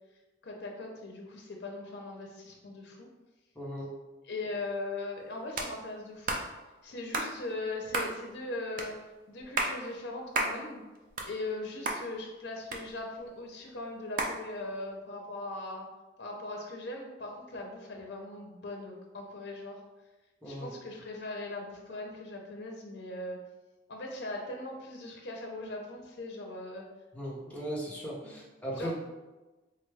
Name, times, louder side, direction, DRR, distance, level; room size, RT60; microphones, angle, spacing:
voice 1, 0.4-3.1 4.2-6.4 6.8-9.0 9.3-10.8 11.2-15.9 16.2-19.8 20.5-23.4 23.9-26.8 28.2-28.4 28.7-28.9, left 2 dB, 65° left, 1 dB, 0.5 m, -39 dB
voice 2, 3.6-3.9 20.4-20.7 27.1-28.9, equal, 10° left, -5 dB, 0.7 m, -37 dB
sound 1, 5.6-5.7 6.3-6.5 7.1-7.3 7.9-8.1 8.8-8.9 9.4-9.8 10.3-10.6 11.0-11.6 11.9-12.0 12.7-13.3 14.2-14.4, right 2 dB, 50° right, 0.4 m, -31 dB
3.6 x 2.2 x 3.3 m, 1.1 s
head